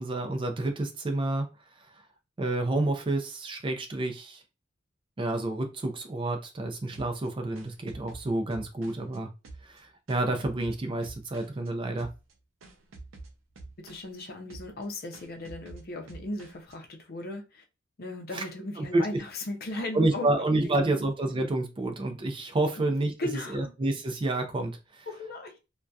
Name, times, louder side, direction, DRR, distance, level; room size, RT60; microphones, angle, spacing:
voice 1, 0.0-1.5 1.8-1.9 2.4-4.4 5.2-9.3 9.6-12.1 18.3-18.4 18.8-19.0 19.9-25.1, right 2 dB, 25° right, 0.4 m, -29 dB
sound 1, 6.9-9.2 9.4-11.7 12.0-12.3 12.6-14.2 14.5-14.9 15.1-16.7, right 2 dB, 85° right, 0.5 m, -47 dB
voice 2, 13.8-17.6 18.0-20.3 20.6-21.0 22.7-22.8 23.2-23.7 25.1-25.6, left 2 dB, 50° left, 0.6 m, -37 dB
2.6 x 2.2 x 2.2 m
head